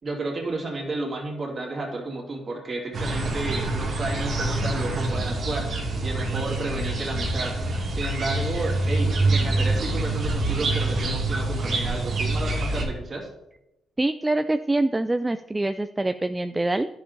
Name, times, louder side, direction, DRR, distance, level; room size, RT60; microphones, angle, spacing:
voice 1, 0.0-7.5 7.9-13.3, right 2 dB, 40° right, 0 dB, 2.5 m, -32 dB
sound 1, 2.9-12.8, right 2 dB, 55° right, 2.0 m, -26 dB
voice 2, 14.0-16.9, right 2 dB, 15° right, 10 dB, 0.3 m, -25 dB
10.5 x 5.8 x 3.9 m, 0.89 s
cardioid pair, 90°, 0 cm